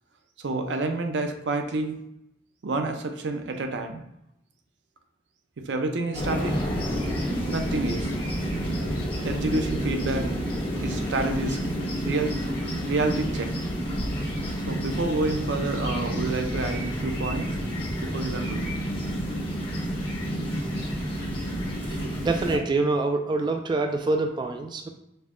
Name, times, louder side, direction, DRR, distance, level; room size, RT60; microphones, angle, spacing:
voice 1, 0.4-2.0 2.6-4.0 5.7-6.6 7.5-8.1 9.2-10.3 10.8-11.6 12.0-12.4 12.8-13.5 14.7-17.5 18.0-18.7 21.9-22.1 22.5-22.6, right 2 dB, 75° right, 5 dB, 0.5 m, -28 dB
sound 1, 6.1-22.6, equal, 30° left, 1.3 m, -29 dB
voice 2, 21.9-24.9, right 3 dB, 25° right, 4 dB, 0.3 m, -26 dB
5.4 x 2.2 x 3.7 m, 0.82 s
head